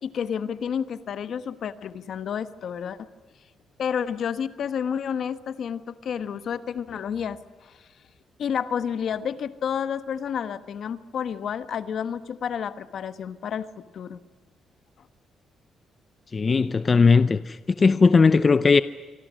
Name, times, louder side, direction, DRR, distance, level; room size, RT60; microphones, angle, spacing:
voice 1, 0.0-3.1 3.8-7.8 8.4-14.2, left 7 dB, 60° left, 1.2 m, -30 dB
voice 2, 16.3-18.8, left 4 dB, 35° left, 0.7 m, -18 dB
26.5 x 24.5 x 6.3 m
cardioid pair, 90°, 0 cm